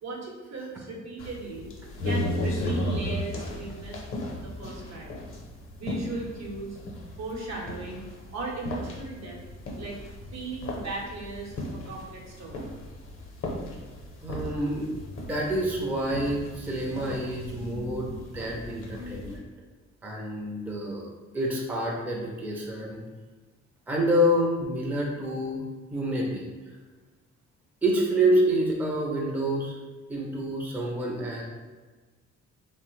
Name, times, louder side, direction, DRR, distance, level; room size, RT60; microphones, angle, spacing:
voice 1, 0.0-1.7 2.0-4.0 4.4-5.2 5.8-6.8 7.2-8.1 8.3-9.4 9.8-10.0 10.3-12.7, right 3 dB, 65° right, -2 dB, 0.9 m, -37 dB
sound 1, 1.2-19.4, left 1 dB, 45° left, 0.7 m, -36 dB
voice 2, 14.2-14.9 15.1-19.4 20.0-21.1 21.3-23.0 23.9-25.6 25.9-26.5 27.8-29.8 30.1-31.4, right 1 dB, 5° right, -2 dB, 0.5 m, -27 dB
3.1 x 2.1 x 3.1 m, 1.3 s
cardioid pair, 90°, 30 cm